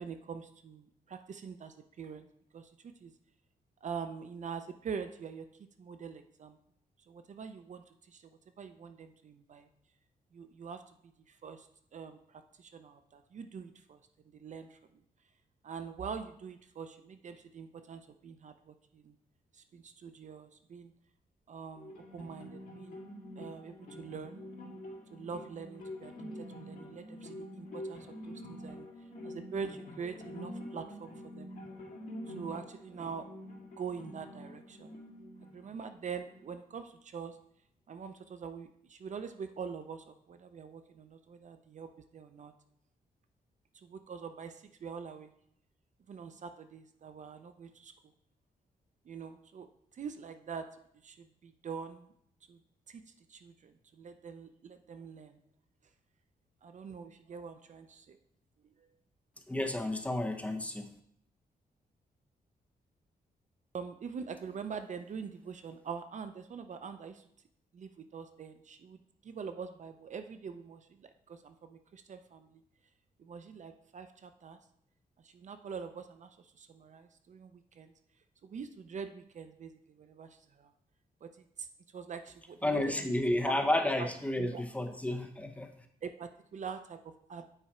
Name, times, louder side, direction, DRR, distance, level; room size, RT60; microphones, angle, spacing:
voice 1, 0.0-2.3 2.5-3.1 3.8-5.5 5.8-6.6 7.1-9.7 10.3-11.7 11.9-14.0 14.3-14.8 15.6-19.1 19.5-20.9 21.5-23.0 23.4-24.4 25.1-28.9 29.2-31.5 32.3-33.3 33.8-35.0 35.5-37.4 37.9-42.5 43.7-45.3 46.1-47.9 49.1-49.7 49.9-50.7 51.0-52.1 52.5-52.6 52.9-53.0 53.3-55.4 56.6-58.2 58.8-58.9 63.7-67.2 67.7-72.6 73.2-74.6 75.2-77.9 78.4-80.7 81.2-81.3 81.6-81.7 81.9-83.1 83.5-83.6 84.0-84.1 84.4-84.6 86.0-87.5, right 6 dB, 50° right, 9 dB, 0.5 m, -44 dB
sound 1, 21.8-36.7, equal, 65° left, 1.9 m, -46 dB
voice 2, 59.5-60.9 82.6-85.7, left 1 dB, 10° left, 4 dB, 0.7 m, -31 dB
8.9 x 4.8 x 4.2 m, 0.71 s
wide cardioid pair, 145°, 16 cm